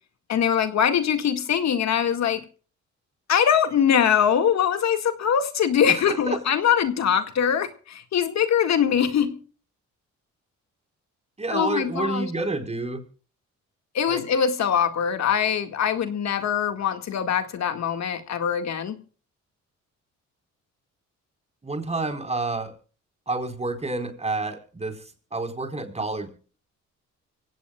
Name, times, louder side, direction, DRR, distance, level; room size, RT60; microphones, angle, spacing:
voice 1, 0.3-2.4 3.3-9.4 11.5-12.3 13.9-19.0, left 8 dB, 65° left, 7 dB, 2.0 m, -22 dB
voice 2, 5.9-6.4 11.4-13.0 14.1-14.2 21.6-22.7 23.3-25.0 25.3-26.3, right 3 dB, 20° right, 6 dB, 4.5 m, -29 dB
25.0 x 17.0 x 2.4 m, 0.40 s
cardioid pair, 90°, 30 cm